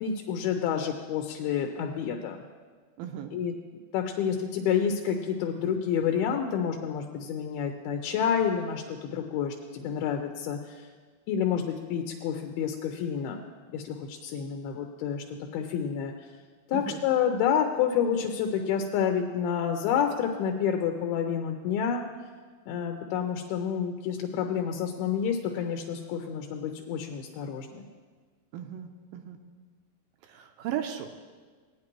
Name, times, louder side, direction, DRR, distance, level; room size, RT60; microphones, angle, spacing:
voice 1, 0.0-2.4 3.3-3.5 3.9-10.9 11.3-13.4 13.7-16.1 16.7-22.0 22.7-27.9, left 8 dB, 85° left, 3 dB, 2.6 m, -29 dB
voice 2, 3.0-3.3 16.7-17.0 28.5-29.4 30.3-31.1, right 10 dB, 80° right, 5 dB, 2.2 m, -36 dB
18.5 x 9.7 x 3.0 m, 1.5 s
omnidirectional pair, 4.3 m